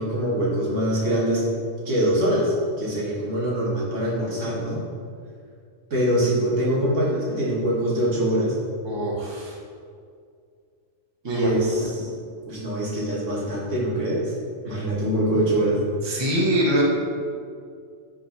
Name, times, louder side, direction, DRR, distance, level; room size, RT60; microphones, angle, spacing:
voice 1, 0.0-1.4 1.9-4.8 5.9-8.6 11.2-12.1 12.5-14.3 14.6-15.8, right 1 dB, 75° right, -5 dB, 2.3 m, -23 dB
voice 2, 8.8-9.5 11.2-11.5 14.7-14.8 16.0-16.8, right 1 dB, 20° right, -3 dB, 1.4 m, -24 dB
8.9 x 4.8 x 5.8 m, 2.2 s
omnidirectional pair, 1.3 m